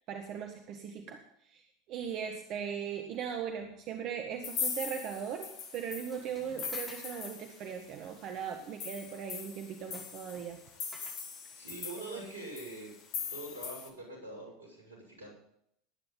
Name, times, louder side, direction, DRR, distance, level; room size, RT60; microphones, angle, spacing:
voice 1, 0.0-10.6 12.1-12.2, right 7 dB, 50° right, 5 dB, 1.6 m, -39 dB
sound 1, 4.4-7.9 8.2-8.3 8.6-13.9, left 6 dB, 45° left, 3.0 m, -41 dB
sound 2, 6.1-7.3 9.9-11.1, left 1 dB, 10° left, 5.7 m, -53 dB
voice 2, 11.5-12.9 13.3-15.3, right 1 dB, 80° right, 1 dB, 6.3 m, -44 dB
20.0 x 9.8 x 3.9 m, 0.71 s
figure-of-eight pair, 80°, 0 cm